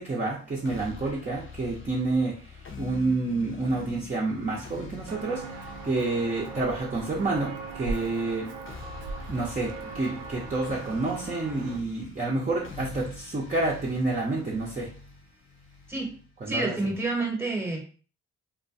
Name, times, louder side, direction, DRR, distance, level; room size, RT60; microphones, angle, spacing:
voice 1, 0.0-8.5 9.3-14.9 16.4-16.7, right 3 dB, 25° right, -5 dB, 0.7 m, -29 dB
sound 1, 0.6-16.6, left 5 dB, 40° left, 0.7 m, -45 dB
Walk footsteps, 5.1-11.8, right 3 dB, 75° right, 0.5 m, -39 dB
voice 2, 16.5-17.8, right 2 dB, 5° right, 0 dB, 1.0 m, -28 dB
2.3 x 2.2 x 2.6 m, 0.40 s
supercardioid pair, 50°, 32 cm